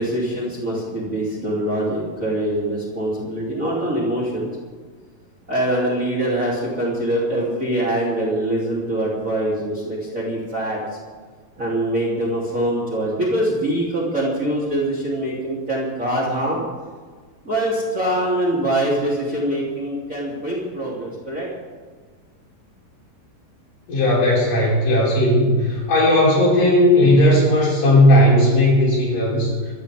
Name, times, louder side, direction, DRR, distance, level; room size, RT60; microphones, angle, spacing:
voice 1, 0.0-4.5 5.5-10.8 11.6-16.6 17.4-21.5, right 1 dB, 20° right, -5 dB, 3.3 m, -23 dB
voice 2, 23.9-29.5, left 1 dB, 60° left, -5 dB, 7.0 m, -16 dB
25.0 x 13.5 x 3.6 m, 1.5 s
omnidirectional pair, 4.4 m